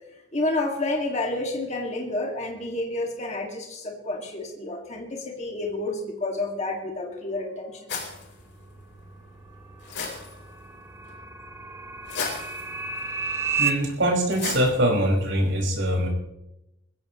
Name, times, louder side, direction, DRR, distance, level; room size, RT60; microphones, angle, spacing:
voice 1, 0.3-7.9 13.4-13.5, left 2 dB, 35° left, 0 dB, 2.3 m, -30 dB
sound 1, 7.9-15.4, left 4 dB, 65° left, 4.1 m, -38 dB
sound 2, 9.4-13.7, right 6 dB, 15° right, 0.8 m, -32 dB
voice 2, 13.6-16.1, right 1 dB, 75° right, -2 dB, 5.7 m, -23 dB
21.5 x 16.5 x 3.2 m, 0.87 s
head